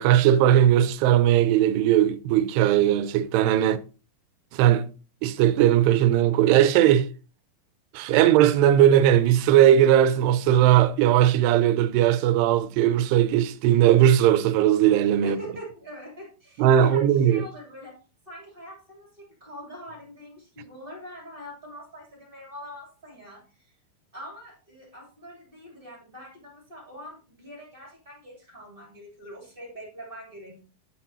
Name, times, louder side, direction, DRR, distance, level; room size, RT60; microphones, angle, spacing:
voice 1, 0.0-3.8 4.5-4.9 5.2-7.1 7.9-15.4 16.6-17.4, right 11 dB, 85° right, 2.7 m, -19 dB
voice 2, 15.2-18.0 18.3-23.7 24.1-30.6, equal, 15° right, 2.4 m, -43 dB
10.0 x 5.9 x 2.7 m
omnidirectional pair, 4.7 m